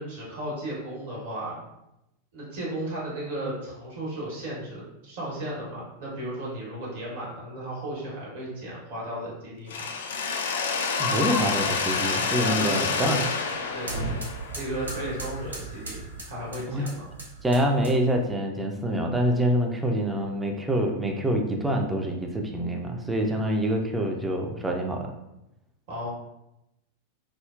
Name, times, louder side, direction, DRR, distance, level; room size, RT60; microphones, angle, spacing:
voice 1, 0.0-1.6 2.3-9.8 12.4-13.2 13.7-14.0 14.6-17.1 25.9-26.1, right 1 dB, 55° right, -5 dB, 1.1 m, -35 dB
Mechanisms, 9.7-15.6, left 5 dB, 60° left, 0.3 m, -28 dB
voice 2, 11.0-13.3 16.7-16.8 17.4-25.1, right 1 dB, 10° right, 2 dB, 0.4 m, -26 dB
sound 1, 11.5-18.2, right 3 dB, 70° right, 0.6 m, -39 dB
3.7 x 2.0 x 2.3 m, 0.88 s
figure-of-eight pair, 90°, 0 cm